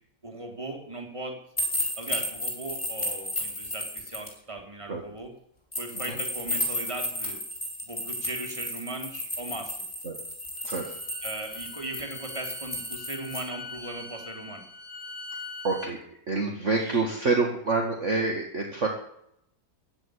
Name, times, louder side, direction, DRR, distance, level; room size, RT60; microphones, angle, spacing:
voice 1, 0.2-1.4 2.0-5.3 5.8-7.4 7.8-9.8 11.2-14.6 16.7-17.3, right 2 dB, 15° right, 3 dB, 3.2 m, -38 dB
sound 1, 1.6-4.3 5.7-13.4, equal, 15° left, 5.2 m, -33 dB
Bowed string instrument, 10.6-15.9, left 3 dB, 40° left, 2.1 m, -43 dB
voice 2, 15.6-16.0 16.3-18.9, right 3 dB, 40° right, 1 dB, 2.2 m, -27 dB
15.5 x 8.1 x 9.9 m, 0.72 s
omnidirectional pair, 2.1 m